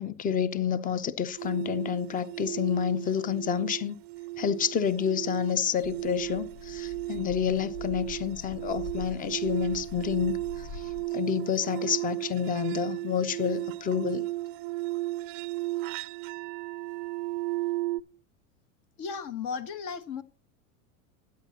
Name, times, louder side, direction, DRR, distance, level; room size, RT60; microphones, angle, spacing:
voice 1, 0.0-4.0 4.4-14.2, left 8 dB, 20° left, 0.7 m, -29 dB
sound 1, 1.4-18.0, right 19 dB, 50° right, 0.4 m, -35 dB
sound 2, 5.8-11.1, left 4 dB, 75° left, 1.5 m, -45 dB
voice 2, 19.0-20.2, left 6 dB, 50° left, 1.3 m, -35 dB
15.5 x 9.3 x 2.9 m
supercardioid pair, 115°, 41 cm